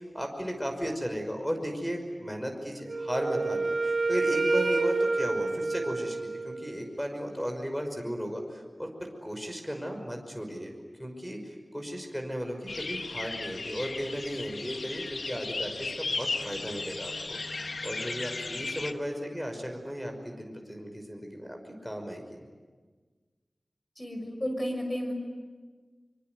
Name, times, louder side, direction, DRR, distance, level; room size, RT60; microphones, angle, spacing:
voice 1, 0.0-10.7 11.0-17.4 17.8-22.4, equal, 5° left, 4 dB, 5.7 m, -35 dB
Wind instrument woodwind instrument, 2.9-6.7, right 3 dB, 70° right, 3.1 m, -28 dB
sound 1, 12.7-18.9, left 3 dB, 85° left, 1.3 m, -35 dB
voice 2, 24.0-25.1, equal, 25° left, 4 dB, 6.1 m, -32 dB
25.0 x 24.5 x 9.4 m, 1.4 s
wide cardioid pair, 65°, 0 cm